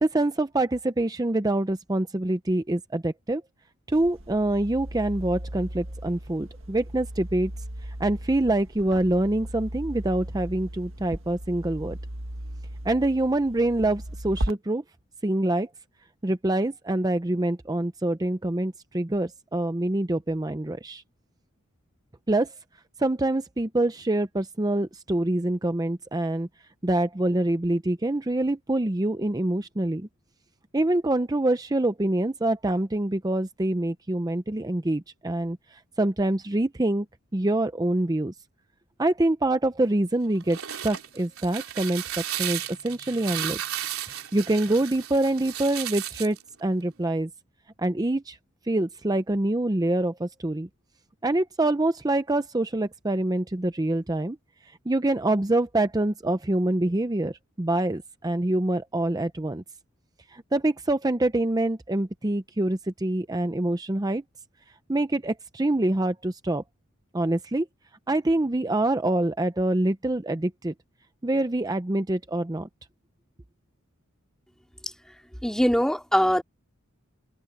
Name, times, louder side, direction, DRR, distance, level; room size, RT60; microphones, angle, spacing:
voice 1, 0.0-3.4 3.9-7.5 8.0-12.0 12.8-14.8 15.2-15.7 16.2-21.0 22.3-22.5 23.0-26.5 26.8-30.1 30.7-37.1 37.3-38.3 39.0-40.6 40.8-43.6 44.1-47.3 47.8-48.4 48.7-50.7 51.2-54.4 54.9-59.6 60.3-64.2 64.9-66.6 67.1-67.7 68.1-70.7 71.2-72.7, right 1 dB, 20° right, 0.6 m, -25 dB
sound 1, 3.9-14.5, right 1 dB, 65° right, 1.8 m, -37 dB
sound 2, 40.3-46.4, right 11 dB, 80° right, 3.4 m, -34 dB
voice 2, 75.4-76.4, equal, 5° left, 2.5 m, -22 dB
head